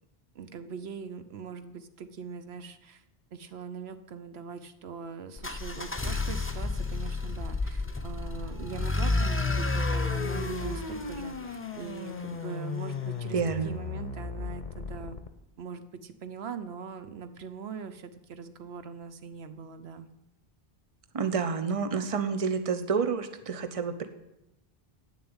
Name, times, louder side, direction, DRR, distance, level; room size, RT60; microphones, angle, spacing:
voice 1, 0.3-3.0 3.3-15.2 15.6-20.1, right 6 dB, 80° right, 10 dB, 1.0 m, -41 dB
sound 1, 5.4-12.3, left 3 dB, 15° left, 0.6 m, -31 dB
sound 2, 8.4-15.3, left 5 dB, 50° left, 1.0 m, -38 dB
voice 2, 13.3-13.7 21.1-24.1, right 5 dB, 35° right, 9 dB, 0.9 m, -29 dB
9.5 x 6.9 x 8.8 m, 0.88 s
omnidirectional pair, 1.0 m